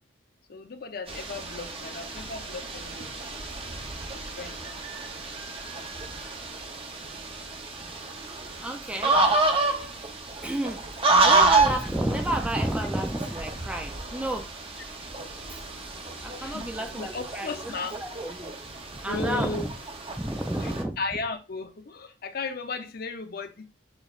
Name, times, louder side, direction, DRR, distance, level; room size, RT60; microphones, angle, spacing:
voice 1, 0.5-3.4 4.1-4.8 16.4-18.0 19.0-19.7 20.6-20.7 21.0-23.7, left 4 dB, 55° left, 0.6 m, -36 dB
sound 1, 1.1-20.8, right 3 dB, 30° right, 0.8 m, -29 dB
voice 2, 8.6-9.2 10.4-10.8 11.2-14.5 15.5-15.6 16.2-17.7 18.0-18.5 19.0-19.7 20.2-21.0, right 1 dB, 5° right, 0.4 m, -31 dB
6.4 x 3.1 x 2.4 m
head